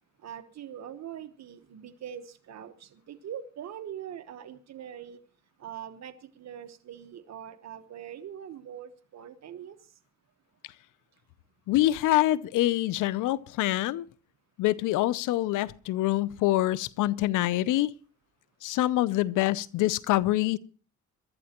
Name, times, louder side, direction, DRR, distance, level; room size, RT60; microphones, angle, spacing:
voice 1, 0.2-5.2 5.6-9.8, right 9 dB, 60° right, 1.1 m, -42 dB
voice 2, 11.7-14.0 14.6-17.9 18.6-20.6, left 16 dB, 90° left, 0.7 m, -25 dB
22.5 x 12.5 x 2.9 m
cardioid pair, 90°, 30 cm